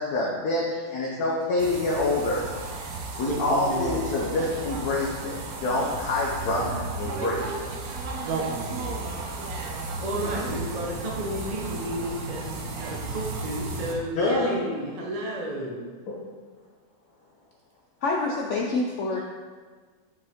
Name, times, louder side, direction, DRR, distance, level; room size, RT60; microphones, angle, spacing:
voice 1, 0.0-2.5 3.2-7.7 10.1-10.6 14.2-14.5 16.1-16.2, left 2 dB, 65° left, -4 dB, 1.3 m, -27 dB
sound 1, 1.6-13.9, right 3 dB, 60° right, 1.1 m, -33 dB
voice 2, 8.7-9.1 9.6-15.9, equal, 30° right, -3 dB, 0.7 m, -33 dB
voice 3, 18.0-19.2, left 3 dB, 90° left, -1 dB, 0.6 m, -26 dB
6.2 x 5.2 x 3.6 m, 1.5 s
omnidirectional pair, 1.9 m